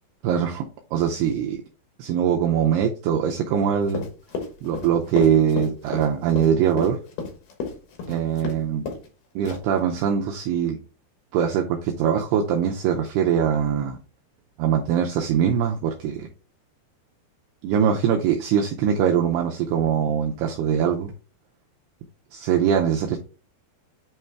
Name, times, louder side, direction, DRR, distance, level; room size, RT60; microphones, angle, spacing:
voice 1, 0.2-0.7 0.9-1.6 2.0-4.1 4.6-7.0 8.1-8.8 9.4-10.8 11.3-14.0 14.6-16.3 17.6-21.1 22.3-23.2, right 8 dB, 85° right, 2 dB, 2.3 m, -22 dB
Run, 3.9-8.6 8.9-9.1 9.4-9.8, left 4 dB, 70° left, 2.2 m, -31 dB
8.9 x 3.2 x 3.3 m, 0.35 s
omnidirectional pair, 5.3 m